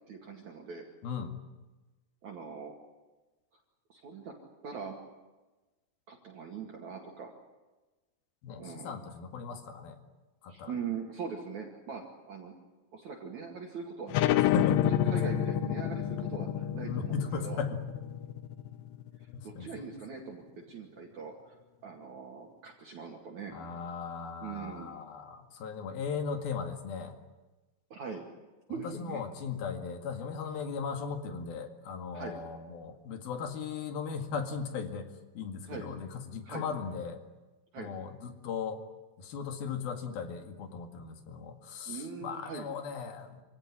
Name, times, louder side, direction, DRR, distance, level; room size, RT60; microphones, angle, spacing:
voice 1, 0.1-0.9 2.2-2.7 3.9-4.3 4.6-4.9 6.1-7.3 8.6-9.0 10.5-12.5 12.9-14.2 14.9-17.6 19.2-20.4 20.7-21.6 21.8-23.6 24.4-24.9 27.9-28.3 28.7-29.2 32.1-32.4 35.6-35.9 36.4-36.7 37.7-37.9 41.9-42.7, right 5 dB, 50° right, 1 dB, 3.2 m, -41 dB
voice 2, 8.4-10.0 10.4-10.7 14.3-15.0 16.8-17.8 19.3-19.7 23.5-27.2 28.8-35.1 35.4-37.2 37.8-38.8 39.2-43.4, left 5 dB, 65° left, 6 dB, 3.8 m, -37 dB
sound 1, 14.1-19.4, left 11 dB, 80° left, 3.1 m, -29 dB
27.0 x 17.0 x 9.9 m, 1.2 s
omnidirectional pair, 4.9 m